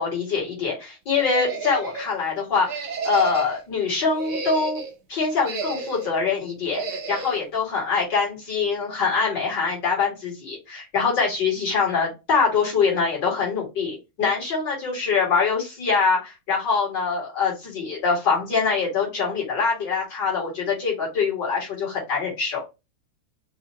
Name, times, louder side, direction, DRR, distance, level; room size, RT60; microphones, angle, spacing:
voice 1, 0.0-2.8 3.0-4.8 5.1-22.6, left 5 dB, 55° left, 2.5 m, -24 dB
sound 1, 1.2-2.1 2.6-3.6 4.1-4.9 5.4-6.2 6.7-7.4, right 4 dB, 55° right, 1.0 m, -31 dB
5.4 x 2.2 x 2.9 m
omnidirectional pair, 2.3 m